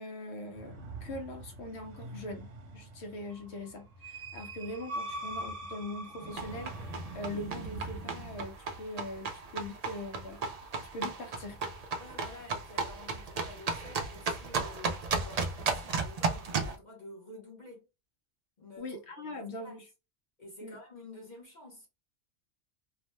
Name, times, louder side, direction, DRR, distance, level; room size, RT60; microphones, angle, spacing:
voice 1, 0.0-10.4 10.9-11.6 18.8-19.8 20.6-20.8, left 1 dB, 65° left, 0.9 m, -42 dB
sound 1, 0.5-8.4, right 2 dB, 75° right, 1.0 m, -43 dB
sound 2, 6.3-16.7, right 4 dB, 60° right, 0.4 m, -35 dB
voice 2, 12.0-17.9 18.6-19.8 20.4-21.9, left 2 dB, 40° left, 1.0 m, -50 dB
2.6 x 2.1 x 3.0 m
omnidirectional pair, 1.3 m